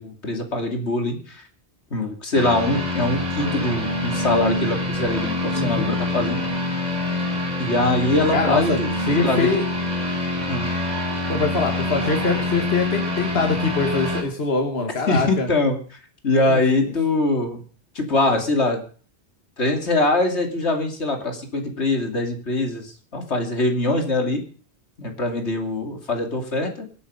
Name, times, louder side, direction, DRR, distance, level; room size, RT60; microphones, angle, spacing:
voice 1, 0.0-1.4 1.9-6.4 7.6-8.9 9.2-9.5 10.5-10.7 15.1-15.8 16.2-17.6 17.9-18.8 19.6-24.4 25.0-26.9, left 2 dB, 85° left, 4 dB, 3.0 m, -23 dB
sound 1, 2.3-14.2, left 2 dB, 40° right, 3.6 m, -25 dB
voice 2, 5.5-6.0 8.3-8.8 9.1-9.6 11.3-15.5 16.5-16.6, left 3 dB, 65° left, 3 dB, 2.1 m, -23 dB
24.5 x 8.7 x 5.6 m, 0.42 s
omnidirectional pair, 1.1 m